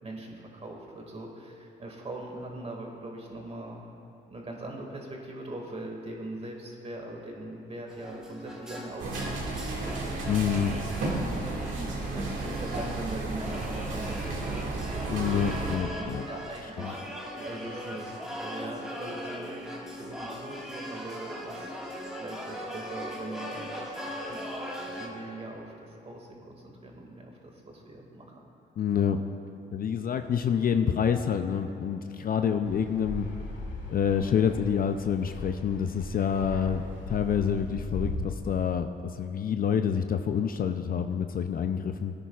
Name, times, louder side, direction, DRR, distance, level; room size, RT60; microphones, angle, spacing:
voice 1, 0.0-3.9 4.3-9.9 11.2-15.0 15.9-17.0 17.3-19.6 19.9-21.7 22.2-23.9 24.3-24.5 24.9-28.3 32.4-32.5, right 1 dB, 30° right, 0 dB, 2.1 m, -41 dB
sound 1, 7.9-25.1, equal, 5° right, 1.7 m, -40 dB
sound 2, 9.0-15.8, right 2 dB, 70° right, 2.1 m, -33 dB
voice 2, 10.3-10.7 15.1-16.2 16.8-16.9 28.8-29.2 29.7-33.3 33.9-38.9 39.1-42.1, left 7 dB, 45° left, 7 dB, 0.5 m, -27 dB
Fixed-wing aircraft airplane, 32.7-38.2, left 2 dB, 70° left, 2.2 m, -39 dB
18.0 x 10.0 x 2.4 m, 2.6 s
cardioid pair, 90°, 20 cm